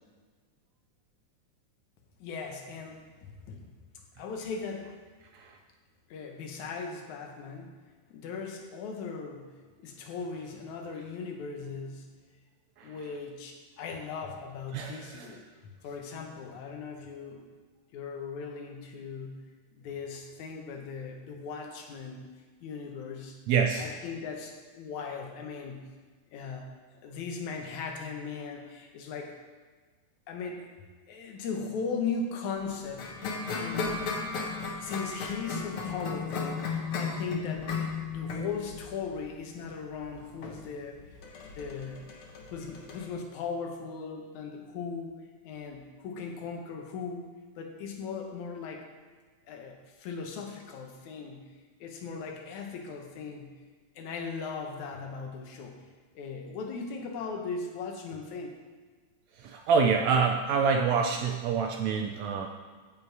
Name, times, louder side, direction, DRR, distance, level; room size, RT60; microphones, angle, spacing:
voice 1, 2.2-3.7 4.2-5.0 6.1-7.8 8.1-12.1 12.8-15.4 15.8-17.4 17.9-19.5 19.7-22.3 22.6-23.4 23.8-25.9 26.3-29.3 30.3-30.7 31.1-33.9 34.8-37.7 38.1-41.2 41.4-42.0 42.5-45.1 45.4-48.9 49.5-51.5 51.8-53.6 54.0-55.8 56.2-58.5, left 5 dB, 75° left, 3 dB, 2.4 m, -38 dB
voice 2, 14.7-15.3 23.5-23.8 59.4-62.5, right 5 dB, 75° right, 3 dB, 1.8 m, -26 dB
sound 1, 32.7-43.1, left 4 dB, 55° left, 1.7 m, -35 dB
15.0 x 5.4 x 4.7 m, 1.5 s
omnidirectional pair, 3.4 m